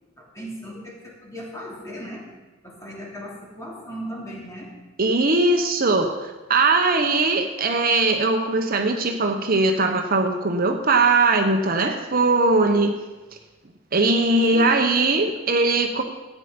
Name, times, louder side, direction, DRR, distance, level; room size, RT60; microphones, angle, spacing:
voice 1, 0.2-2.3 2.6-4.7 14.5-15.0, equal, 15° left, -3 dB, 3.0 m, -37 dB
voice 2, 5.0-13.0 13.9-16.0, right 3 dB, 50° right, 5 dB, 1.0 m, -20 dB
14.5 x 9.3 x 5.2 m, 1.2 s
head